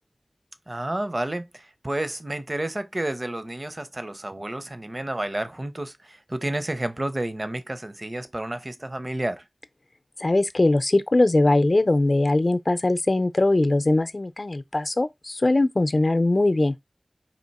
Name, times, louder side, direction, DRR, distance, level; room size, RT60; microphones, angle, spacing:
voice 1, 0.7-9.4, right 1 dB, 40° right, 0.7 m, -30 dB
voice 2, 10.2-16.7, left 2 dB, 60° left, 0.6 m, -21 dB
4.3 x 2.9 x 4.1 m
wide cardioid pair, 50°, 0 cm